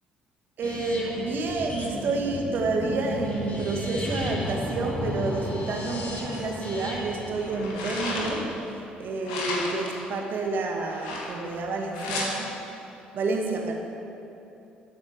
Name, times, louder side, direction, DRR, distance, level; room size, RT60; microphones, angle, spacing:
sound 1, 0.6-8.5, left 1 dB, 35° left, 2.7 m, -34 dB
voice 1, 0.6-12.5 13.1-13.7, right 3 dB, 50° right, 1 dB, 1.8 m, -29 dB
sound 2, 6.3-6.7 7.3-8.6 9.2-10.0 10.9-11.6 11.9-12.3, left 2 dB, 75° left, 1.8 m, -33 dB
15.0 x 8.5 x 4.9 m, 2.9 s
figure-of-eight pair, 50°, 4 cm